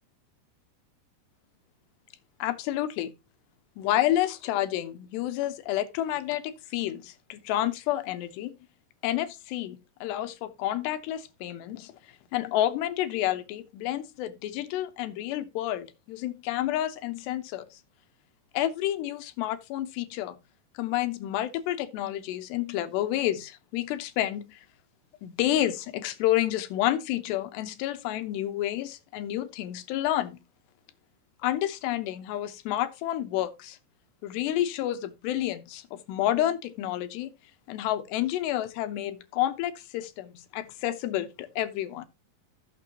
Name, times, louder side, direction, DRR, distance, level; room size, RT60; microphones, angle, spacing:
voice 1, 2.4-3.1 3.8-8.6 9.0-12.0 12.3-17.7 18.5-20.4 20.7-24.6 25.2-30.4 31.4-33.8 34.2-37.3 37.7-42.1, left 13 dB, 90° left, 3.2 m, -29 dB
15.0 x 6.8 x 3.0 m
omnidirectional pair, 4.7 m